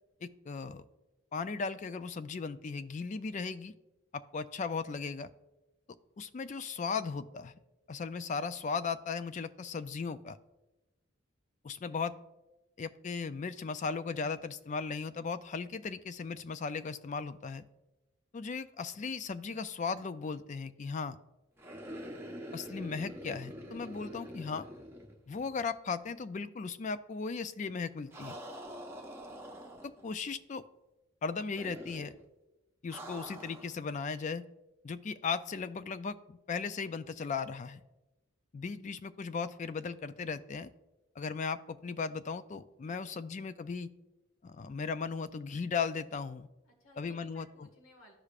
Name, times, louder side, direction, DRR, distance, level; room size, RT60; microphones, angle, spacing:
voice 1, 0.2-0.8 1.3-3.7 4.1-5.3 6.2-7.5 7.9-10.4 11.6-12.1 12.8-17.6 18.3-21.2 22.5-24.7 25.3-28.4 29.8-30.6 31.2-32.1 32.8-34.4 34.8-37.8 38.5-40.7 41.2-43.9 44.4-46.5 47.0-47.5, left 5 dB, 35° left, 13 dB, 0.3 m, -37 dB
sound 1, 21.6-25.7 26.0-26.1 28.1-30.1 31.5-32.2 32.9-33.8, equal, 10° right, 0.8 m, -45 dB
voice 2, 42.8-43.2 46.6-48.2, left 1 dB, 75° left, 2 dB, 1.6 m, -60 dB
14.0 x 4.9 x 2.4 m, 1.0 s
head